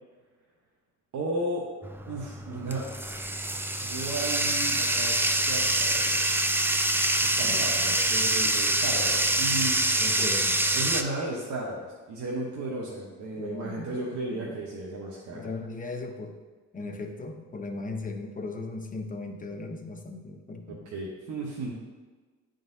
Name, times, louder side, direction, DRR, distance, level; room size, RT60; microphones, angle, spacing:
voice 1, 1.1-1.6 2.1-2.8 3.8-6.2 7.2-9.9 10.2-10.3 10.7-15.5 20.9-21.7, right 2 dB, 75° right, -3 dB, 1.0 m, -34 dB
Bathtub (filling or washing), 1.8-11.0, right 1 dB, 10° right, 0.3 m, -26 dB
voice 2, 7.4-7.9 10.0-10.6 13.4-14.0 14.3-14.6 15.3-16.4 16.7-20.9, left 3 dB, 25° left, 3 dB, 0.8 m, -37 dB
10.0 x 3.9 x 2.7 m, 1.4 s
cardioid pair, 90°, 30 cm